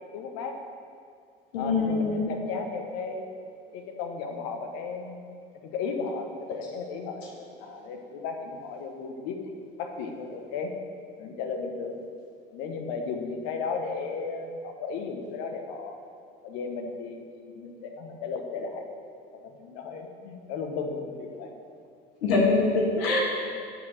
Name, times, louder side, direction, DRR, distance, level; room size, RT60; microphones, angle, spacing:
voice 1, 0.1-0.5 1.6-3.2 3.7-5.3 5.6-9.5 9.8-10.7 11.2-12.0 12.5-16.0 16.4-19.0 19.3-21.5, left 4 dB, 65° left, 4 dB, 1.1 m, -35 dB
voice 2, 1.5-2.2 22.2-23.2, left 3 dB, 80° left, -3 dB, 1.6 m, -23 dB
8.8 x 4.9 x 6.3 m, 2.3 s
hypercardioid pair, 70°, 30 cm